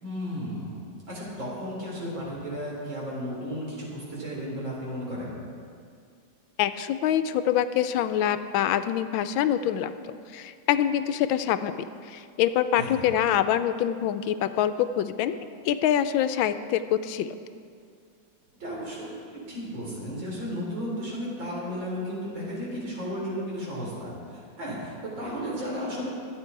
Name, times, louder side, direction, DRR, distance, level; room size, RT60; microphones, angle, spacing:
voice 1, 0.0-0.7 1.1-5.4 12.7-13.0 18.5-19.1 19.5-26.2, equal, 75° right, -5 dB, 4.8 m, -34 dB
voice 2, 6.6-15.4 15.6-17.4, left 10 dB, 85° left, 11 dB, 1.4 m, -25 dB
24.0 x 9.1 x 4.6 m, 2.3 s
omnidirectional pair, 2.2 m